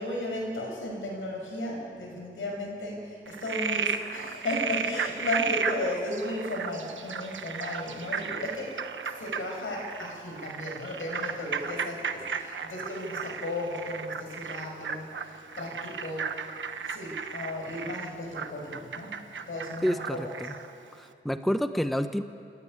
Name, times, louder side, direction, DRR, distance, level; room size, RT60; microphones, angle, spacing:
voice 1, 0.0-8.8 9.2-16.3 16.8-19.1 19.5-20.3, left 1 dB, 80° left, 0 dB, 6.1 m, -35 dB
Frog, 3.3-20.7, right 6 dB, 70° right, 1.1 m, -34 dB
voice 2, 19.8-20.5 21.0-22.2, equal, ahead, 9 dB, 0.8 m, -29 dB
28.5 x 12.0 x 9.6 m, 2.5 s
wide cardioid pair, 105°, 21 cm